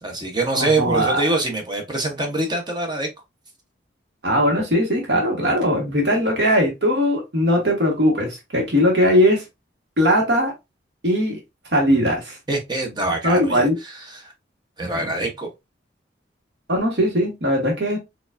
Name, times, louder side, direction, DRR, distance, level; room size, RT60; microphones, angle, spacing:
voice 1, 0.0-3.1 12.5-14.3 14.8-15.5, right 2 dB, 25° right, 0.7 m, -24 dB
voice 2, 0.5-1.2 4.2-9.4 10.0-10.5 11.0-11.4 11.7-12.4 13.2-13.7 16.7-18.0, equal, 60° right, 1.2 m, -19 dB
4.4 x 2.4 x 2.4 m
head